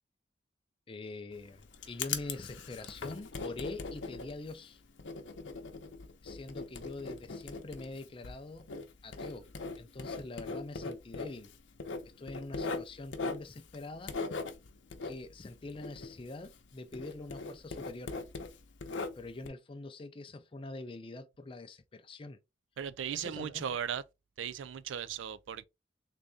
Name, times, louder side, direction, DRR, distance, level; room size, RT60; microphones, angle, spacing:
voice 1, 0.9-4.8 6.2-8.7 9.0-9.5 9.8-11.5 12.2-14.2 15.0-18.1 19.2-22.4 23.1-23.7, left 2 dB, 30° left, 0.4 m, -44 dB
Writing, 1.3-16.7 16.9-19.5, left 4 dB, 85° left, 0.7 m, -40 dB
voice 2, 22.8-24.0 24.4-25.6, right 8 dB, 90° right, 0.4 m, -37 dB
3.7 x 2.6 x 3.4 m
head